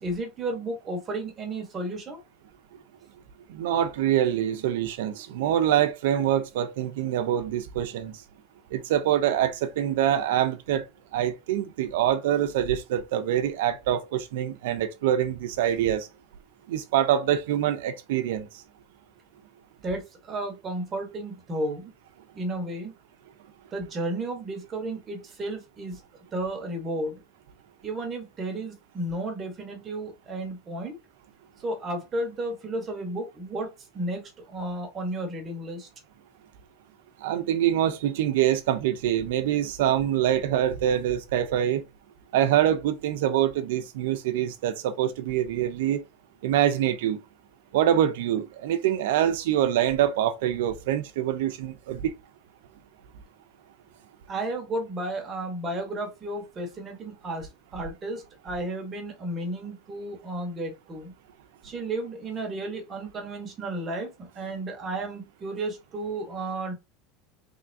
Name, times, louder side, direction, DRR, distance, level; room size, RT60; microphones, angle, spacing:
voice 1, 0.0-2.2 19.8-21.9 22.3-22.9 23.7-26.0 26.3-27.2 27.8-31.0 31.6-35.9 54.3-61.1 61.6-66.7, right 1 dB, 15° right, 1.0 m, -33 dB
voice 2, 3.5-8.2 8.7-10.8 11.1-16.1 16.7-18.5 37.2-41.8 42.3-46.0 46.4-47.2 47.7-52.1, right 11 dB, 80° right, 0.5 m, -25 dB
3.6 x 3.2 x 2.6 m
supercardioid pair, 180°, 0 cm